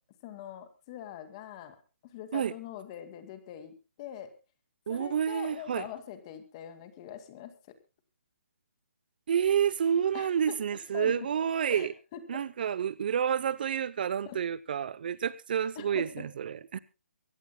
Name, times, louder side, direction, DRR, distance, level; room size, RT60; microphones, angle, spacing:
voice 1, 0.2-1.8 2.0-4.3 4.9-7.8 10.1-10.6 10.9-11.2 11.7-12.4 14.3-14.4 15.8-16.3, left 10 dB, 25° left, 2.1 m, -43 dB
voice 2, 4.9-5.9 9.3-11.9 12.3-16.8, right 8 dB, 40° right, 0.6 m, -29 dB
24.0 x 16.5 x 2.2 m
hypercardioid pair, 165°, 7 cm